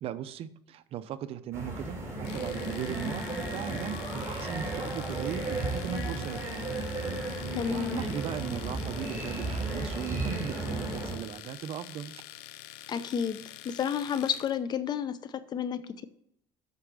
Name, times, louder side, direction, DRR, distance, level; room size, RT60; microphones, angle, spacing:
voice 1, 0.0-6.7 7.3-12.2, right 10 dB, 55° right, 13 dB, 0.7 m, -38 dB
sound 1, 1.5-11.2, right 2 dB, 25° right, 3.5 m, -34 dB
Domestic sounds home sounds, 2.2-14.6, left 14 dB, 90° left, 0.6 m, -46 dB
voice 2, 7.5-8.0 12.9-13.4 13.6-16.0, left 8 dB, 35° left, 13 dB, 0.7 m, -31 dB
8.3 x 5.9 x 5.4 m, 0.73 s
cardioid pair, 115°, 12 cm